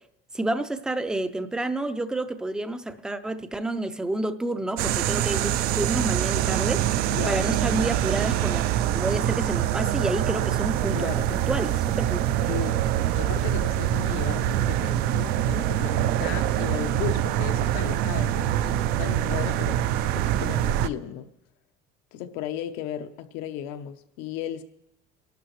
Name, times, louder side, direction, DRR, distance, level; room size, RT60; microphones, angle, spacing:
voice 1, 0.3-6.8 7.3-8.6 8.9-12.2, right 2 dB, 5° right, 0.4 m, -29 dB
sound 1, 4.8-20.9, right 12 dB, 65° right, 0.5 m, -25 dB
voice 2, 7.1-7.4 10.9-11.3 12.4-12.9 13.1-21.3 22.1-24.6, left 10 dB, 85° left, 0.9 m, -35 dB
25.5 x 12.0 x 3.2 m
cardioid pair, 165°, 17 cm